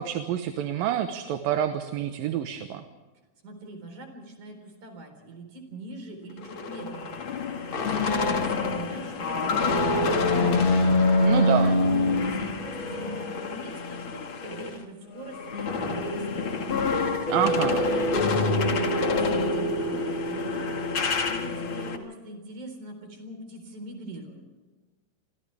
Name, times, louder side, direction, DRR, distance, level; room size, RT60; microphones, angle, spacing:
voice 1, 0.0-2.8 11.2-11.8 17.3-17.8, right 11 dB, 75° right, 7 dB, 2.8 m, -27 dB
voice 2, 3.4-10.6 11.0-16.7 17.0-20.7 21.3-24.5, right 2 dB, 55° right, 5 dB, 5.5 m, -42 dB
sound 1, 6.4-14.8 15.1-22.0, left 2 dB, 40° left, 2.2 m, -26 dB
29.5 x 25.5 x 3.5 m, 1.3 s
omnidirectional pair, 4.2 m